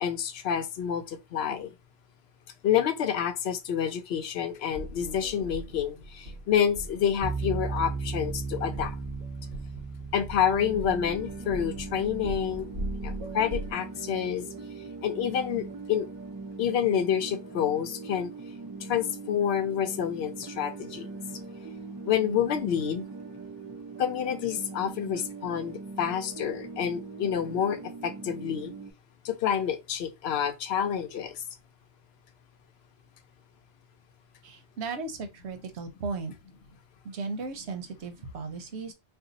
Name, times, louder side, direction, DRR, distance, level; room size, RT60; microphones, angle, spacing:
voice 1, 0.0-1.7 2.6-8.9 10.1-12.7 13.0-14.5 15.0-16.1 16.6-18.3 18.9-21.1 22.1-23.0 24.0-27.8 28.0-28.7 29.2-31.3, left 9 dB, 75° left, 0.8 m, -28 dB
sound 1, 4.7-13.7, right 1 dB, 55° right, 1.1 m, -40 dB
sound 2, 7.2-14.3, right 4 dB, 5° left, 0.8 m, -37 dB
sound 3, 10.5-28.9, right 3 dB, 35° right, 0.3 m, -41 dB
voice 2, 34.4-36.3 37.0-38.9, right 4 dB, 85° right, 1.0 m, -36 dB
2.6 x 2.3 x 3.8 m
omnidirectional pair, 1.1 m